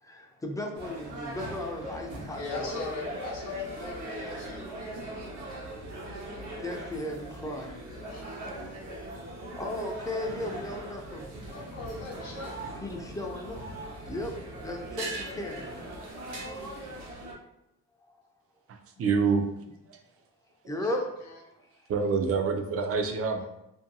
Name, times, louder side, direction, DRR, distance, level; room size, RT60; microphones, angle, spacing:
voice 1, 0.0-2.8 4.3-4.4 6.6-7.8 9.6-11.3 12.8-14.3 14.6-15.8 18.1-18.2 20.7-21.1 21.8-21.9, left 1 dB, 10° left, 1 dB, 0.4 m, -36 dB
sound 1, 0.7-17.3, right 1 dB, 75° right, 0.8 m, -40 dB
voice 2, 2.3-4.7 7.6-9.0 11.5-12.5 20.6-21.4 23.4-23.5, left 4 dB, 60° left, -5 dB, 0.7 m, -40 dB
voice 3, 19.0-19.4 19.9-20.0 21.9-23.4, right 5 dB, 50° right, 4 dB, 0.5 m, -26 dB
2.6 x 2.2 x 2.6 m, 0.84 s
cardioid pair, 90°, 30 cm